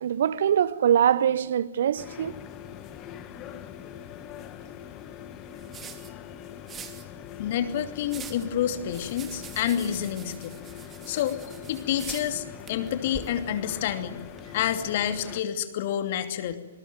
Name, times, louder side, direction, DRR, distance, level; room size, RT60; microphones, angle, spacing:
voice 1, 0.0-2.3, right 9 dB, 55° right, 0.9 m, -23 dB
sound 1, 2.0-15.4, left 10 dB, 25° left, 2.0 m, -43 dB
sound 2, 2.3-14.5, right 6 dB, 20° right, 2.9 m, -46 dB
voice 2, 7.4-10.6 11.1-11.4 11.7-14.2 14.5-16.6, left 10 dB, 45° left, 2.6 m, -28 dB
27.0 x 21.0 x 9.3 m
figure-of-eight pair, 120°, 0 cm